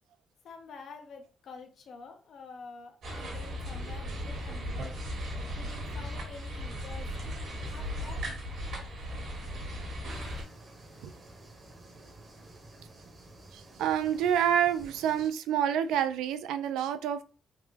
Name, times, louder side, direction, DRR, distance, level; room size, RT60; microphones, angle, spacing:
voice 1, 0.4-4.9 5.5-8.2, left 4 dB, 65° left, 4 dB, 0.9 m, -48 dB
sound 1, 3.0-10.4, equal, 70° right, 1.6 m, -37 dB
sound 2, 10.1-15.3, right 2 dB, 35° right, 1.0 m, -52 dB
voice 2, 13.5-17.2, right 9 dB, 90° right, 11 dB, 0.3 m, -28 dB
3.7 x 2.4 x 3.2 m, 0.37 s
cardioid pair, 90°, 0 cm